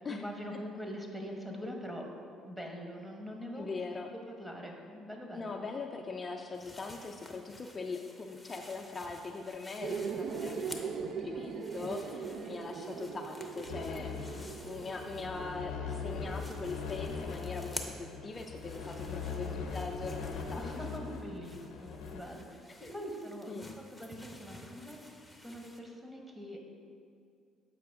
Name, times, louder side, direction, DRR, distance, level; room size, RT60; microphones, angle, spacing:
voice 1, 0.1-2.1 2.5-5.6 11.7-11.9 12.3-12.6 19.1-19.7 20.6-22.6 22.9-23.7 24.0-25.2 25.4-26.7, equal, 10° right, 1 dB, 1.1 m, -43 dB
voice 2, 3.6-4.1 5.3-20.7 22.8-23.0 23.5-23.7, left 4 dB, 30° left, 2 dB, 0.4 m, -41 dB
sound 1, 6.5-11.1 11.4-15.6 15.9-25.8, left 1 dB, 5° left, 0.7 m, -51 dB
sound 2, 9.8-17.4, right 6 dB, 65° right, 0.3 m, -41 dB
sound 3, 13.7-22.2, left 5 dB, 75° left, 0.7 m, -40 dB
7.6 x 4.7 x 3.5 m, 2.3 s
supercardioid pair, 70°, 0 cm